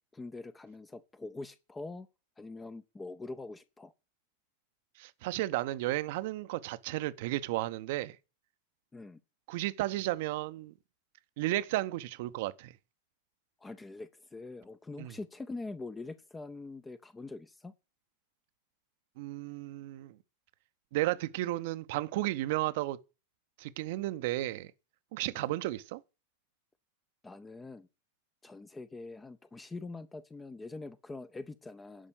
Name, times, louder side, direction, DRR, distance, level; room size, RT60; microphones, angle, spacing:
voice 1, 0.1-2.1 2.4-3.9 8.9-9.2 13.6-17.7 25.3-25.6 27.2-27.9 28.4-32.1, left 3 dB, 10° left, 0.7 m, -44 dB
voice 2, 5.0-8.2 9.5-10.7 11.4-12.7 15.0-15.1 19.2-20.2 20.9-23.0 23.6-24.7 25.1-26.0, right 17 dB, 50° right, 0.8 m, -33 dB
11.0 x 5.3 x 8.5 m
figure-of-eight pair, 90°, 0 cm